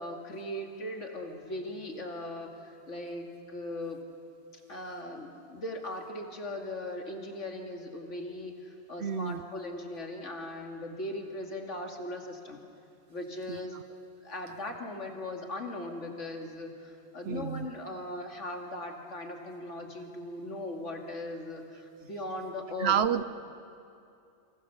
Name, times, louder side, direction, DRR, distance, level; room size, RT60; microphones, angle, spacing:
voice 1, 0.0-4.0 4.5-12.6 13.1-14.0 14.2-23.0, left 1 dB, 80° left, 2 dB, 2.8 m, -39 dB
voice 2, 9.0-9.4 13.5-13.6 17.3-17.7 22.8-23.2, right 8 dB, 65° right, 13 dB, 1.0 m, -28 dB
28.0 x 25.0 x 7.1 m, 2.5 s
omnidirectional pair, 1.2 m